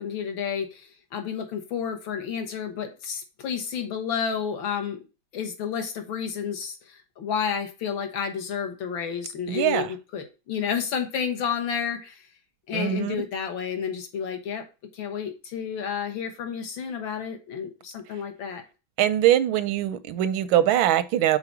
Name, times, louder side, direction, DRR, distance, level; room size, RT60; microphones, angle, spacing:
voice 1, 0.0-5.0 5.3-9.8 10.1-12.3 12.7-14.6 14.9-18.6, left 7 dB, 75° left, 1.9 m, -31 dB
voice 2, 9.5-9.9 12.7-13.3 19.0-21.4, right 12 dB, 85° right, 1.4 m, -22 dB
4.9 x 4.1 x 5.9 m
omnidirectional pair, 2.2 m